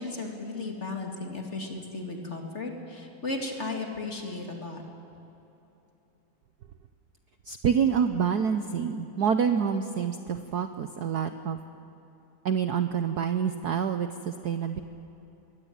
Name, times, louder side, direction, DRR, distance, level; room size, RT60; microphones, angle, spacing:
voice 1, 0.0-4.8, left 3 dB, 30° left, 1 dB, 2.6 m, -35 dB
voice 2, 7.4-11.6 12.4-14.8, right 7 dB, 65° right, 8 dB, 1.0 m, -27 dB
22.0 x 17.0 x 9.5 m, 3.0 s
omnidirectional pair, 2.4 m